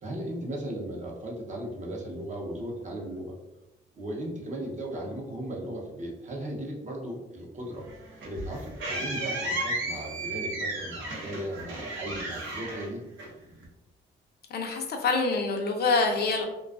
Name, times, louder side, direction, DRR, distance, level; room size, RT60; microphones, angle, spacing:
voice 1, 0.0-3.3 4.0-7.9 8.2-13.0, right 1 dB, 40° right, -1 dB, 0.6 m, -36 dB
sound 1, 7.8-13.6, right 2 dB, 75° right, 0.7 m, -34 dB
voice 2, 14.5-16.4, left 3 dB, 55° left, 3 dB, 0.4 m, -26 dB
2.4 x 2.3 x 2.3 m, 0.98 s
cardioid pair, 90°, 20 cm